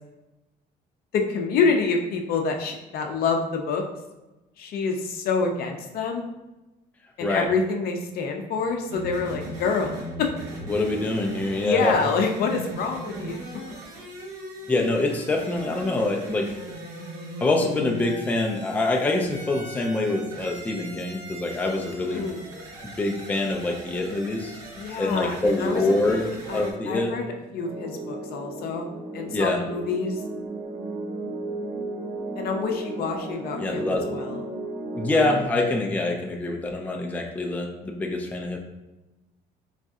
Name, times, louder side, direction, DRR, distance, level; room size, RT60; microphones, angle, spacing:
voice 1, 1.1-3.8 4.6-6.3 7.2-10.4 11.6-13.4 22.0-22.5 24.7-30.2 32.4-34.4, left 4 dB, 65° left, 3 dB, 0.5 m, -27 dB
sound 1, 8.9-26.7, right 1 dB, 85° right, 0.8 m, -39 dB
voice 2, 10.7-11.9 14.7-16.5 17.4-22.2 23.0-24.6 25.0-26.3 26.5-27.2 29.3-29.7 33.6-34.0 35.0-38.6, left 2 dB, 10° left, 1 dB, 0.4 m, -25 dB
sound 2, 27.6-35.5, right 2 dB, 50° right, 0.8 m, -34 dB
4.0 x 2.6 x 2.3 m, 1.0 s
cardioid pair, 110°, 17 cm